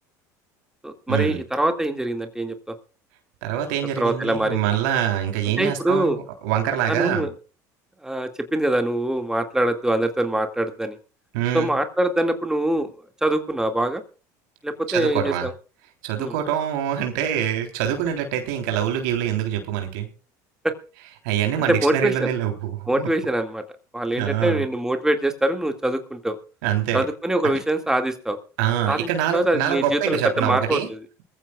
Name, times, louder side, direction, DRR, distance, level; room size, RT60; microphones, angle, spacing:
voice 1, 0.8-2.7 4.0-4.6 5.6-6.2 6.9-7.3 8.0-11.0 11.5-12.9 13.2-14.0 14.6-15.5 16.2-16.3 20.6-20.7 21.7-22.3 22.9-23.6 23.9-26.4 26.9-28.4 28.9-30.8, right 1 dB, 5° right, 6 dB, 2.1 m, -23 dB
voice 2, 3.4-7.3 11.3-11.7 14.9-15.5 16.0-20.1 21.2-23.1 24.2-24.6 26.6-27.0 27.4-27.5 28.6-30.9, right 10 dB, 80° right, 4 dB, 3.6 m, -25 dB
22.0 x 14.5 x 2.4 m, 0.35 s
supercardioid pair, 85°, 9 cm